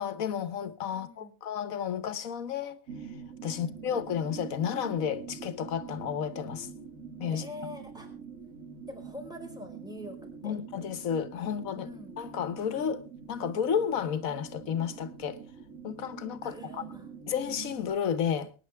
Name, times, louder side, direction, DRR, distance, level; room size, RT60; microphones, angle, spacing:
voice 1, 0.0-3.1 3.4-6.7 7.2-7.5 10.4-11.9 12.2-15.4 15.8-16.8 17.3-18.5, left 8 dB, 85° left, 1.4 m, -32 dB
voice 2, 0.9-1.3 3.5-4.0 7.3-8.1 8.9-10.2 10.4-10.5 11.7-12.2 16.4-17.1, left 1 dB, 5° right, 4.6 m, -45 dB
sound 1, 2.9-17.9, right 6 dB, 80° right, 1.9 m, -45 dB
23.5 x 9.9 x 3.4 m
omnidirectional pair, 1.4 m